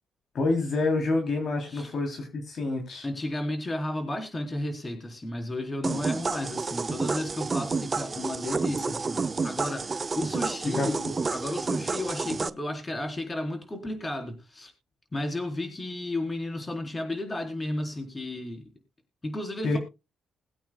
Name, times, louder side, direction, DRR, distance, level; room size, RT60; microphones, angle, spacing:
voice 1, 0.3-3.1 10.7-10.9 19.6-19.8, left 3 dB, 55° left, 3.3 m, -27 dB
voice 2, 3.0-14.7 15.1-18.7 19.2-19.8, left 1 dB, 25° left, 4.1 m, -33 dB
sound 1, 5.8-12.5, right 4 dB, 30° right, 0.6 m, -30 dB
21.5 x 8.6 x 2.3 m
cardioid pair, 90°, 0 cm